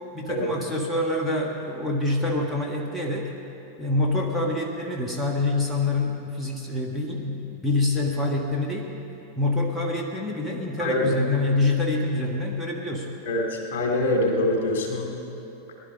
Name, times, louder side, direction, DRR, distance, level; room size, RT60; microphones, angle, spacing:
voice 1, 0.1-3.3 3.8-8.9 9.4-13.1, left 2 dB, 5° left, -1 dB, 1.5 m, -26 dB
voice 2, 13.7-15.1, left 1 dB, 55° left, 1 dB, 2.3 m, -24 dB
20.0 x 11.5 x 5.2 m, 2.9 s
figure-of-eight pair, 90°, 0 cm